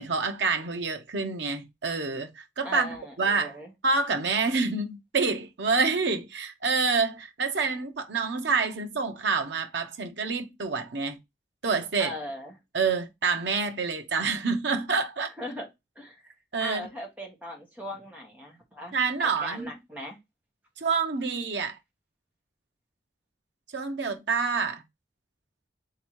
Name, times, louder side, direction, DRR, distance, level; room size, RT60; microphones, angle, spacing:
voice 1, 0.0-2.9 3.2-3.5 3.8-11.2 11.6-12.1 12.7-15.3 16.5-16.9 18.9-19.7 20.8-21.8 23.7-24.8, right 4 dB, 85° right, 0.8 m, -27 dB
voice 2, 2.6-3.7 12.0-12.6 15.4-15.7 15.9-16.3 16.6-20.2, left 1 dB, 10° right, 1.3 m, -39 dB
3.5 x 2.9 x 4.5 m
head